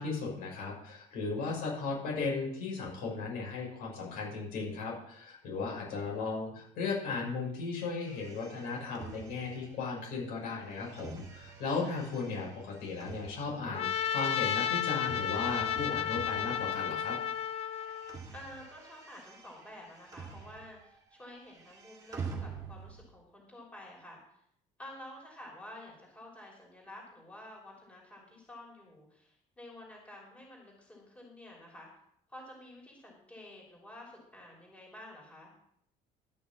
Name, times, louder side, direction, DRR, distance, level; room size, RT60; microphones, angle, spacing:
voice 1, 0.0-17.2, left 4 dB, 90° left, -3 dB, 6.3 m, -36 dB
sound 1, 7.9-17.2 17.5-20.9 21.2-23.1, right 5 dB, 25° right, 2.1 m, -47 dB
voice 2, 12.0-12.4 18.3-24.2 24.8-31.9 32.3-35.5, left 1 dB, 10° left, -2 dB, 3.3 m, -50 dB
Trumpet, 13.7-18.2, left 9 dB, 45° left, 0.8 m, -32 dB
12.5 x 6.2 x 7.3 m, 0.71 s
cardioid pair, 165°, 14 cm